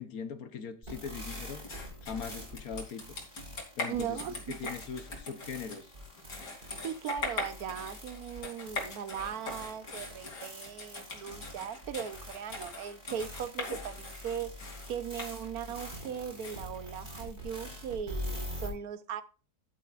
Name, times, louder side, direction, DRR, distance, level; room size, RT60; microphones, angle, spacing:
voice 1, 0.0-1.6 2.0-3.0 3.8-4.2 4.5-5.9, left 6 dB, 60° left, 1.3 m, -40 dB
sound 1, 0.8-18.7, equal, 30° right, 4.9 m, -45 dB
sound 2, 1.2-17.6, left 3 dB, 85° left, 3.6 m, -42 dB
voice 2, 3.9-4.4 4.6-4.7 6.8-19.2, right 8 dB, 65° right, 1.3 m, -38 dB
14.5 x 8.9 x 2.5 m
omnidirectional pair, 1.8 m